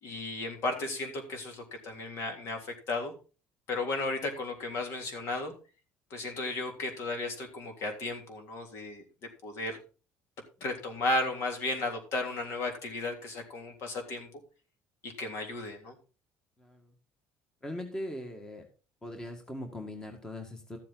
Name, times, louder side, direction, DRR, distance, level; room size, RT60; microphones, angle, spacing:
voice 1, 0.0-3.1 3.7-5.5 6.1-9.0 9.4-9.8 10.6-14.3 15.0-15.9, left 2 dB, 55° left, 4 dB, 3.3 m, -34 dB
voice 2, 16.6-17.0 17.6-18.7 19.0-20.8, left 1 dB, 10° left, 4 dB, 1.8 m, -40 dB
13.5 x 7.6 x 3.9 m, 0.35 s
cardioid pair, 135°, 5 cm